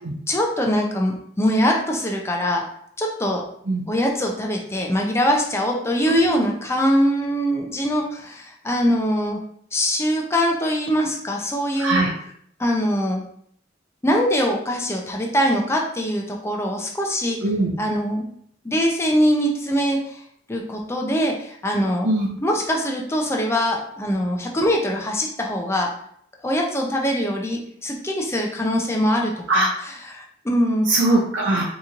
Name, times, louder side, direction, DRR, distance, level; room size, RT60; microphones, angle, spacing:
voice 1, 0.3-2.6 3.0-3.4 3.9-9.4 9.7-12.0 12.6-13.2 14.0-17.4 17.8-18.3 18.6-20.2 20.5-22.1 22.4-25.9 26.4-29.7 30.1-30.9, equal, 15° left, 0 dB, 0.5 m, -22 dB
voice 2, 6.1-6.4 11.8-12.1 17.4-17.8 22.0-22.3 29.5-29.7 30.9-31.6, right 2 dB, 75° right, -4 dB, 0.6 m, -20 dB
4.0 x 2.9 x 2.5 m, 0.66 s
head